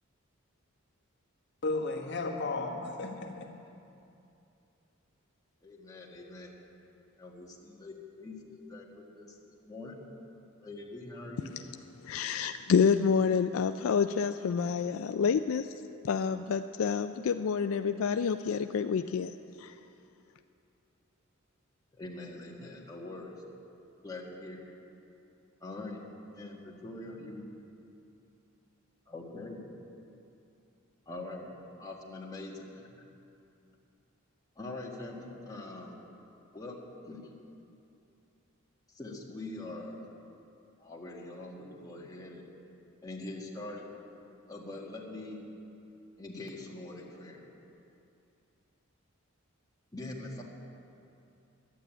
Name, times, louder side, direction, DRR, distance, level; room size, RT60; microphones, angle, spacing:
voice 1, 1.6-3.6, left 3 dB, 60° left, 1 dB, 1.4 m, -34 dB
voice 2, 5.6-6.5 7.2-9.4 9.6-10.0 10.6-11.5 21.9-23.4 24.0-24.6 25.6-26.0 26.3-27.4 29.1-29.6 31.0-31.5 31.8-32.9 34.5-36.0 36.5-36.8 37.0-37.3 38.9-40.0 40.8-42.4 43.0-43.9 44.5-45.4 46.2-47.4 49.9-50.4, left 2 dB, 20° left, -3 dB, 1.7 m, -43 dB
voice 3, 12.0-19.7, left 6 dB, 75° left, 9 dB, 0.4 m, -28 dB
12.0 x 9.2 x 9.0 m, 2.7 s
head